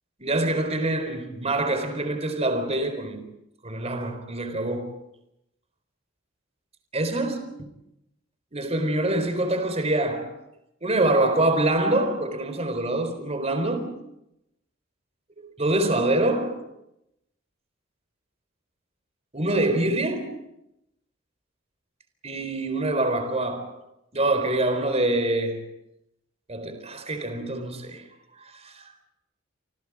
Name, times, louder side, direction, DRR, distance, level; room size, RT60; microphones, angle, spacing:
voice 1, 0.2-3.3 3.6-5.0 6.9-7.7 8.5-10.4 10.8-14.0 15.4-16.7 19.3-20.4 22.2-23.8 24.1-25.7 26.5-28.0 28.4-28.9, right 2 dB, 35° right, 4.2 m, -25 dB
28.5 x 27.0 x 5.0 m
head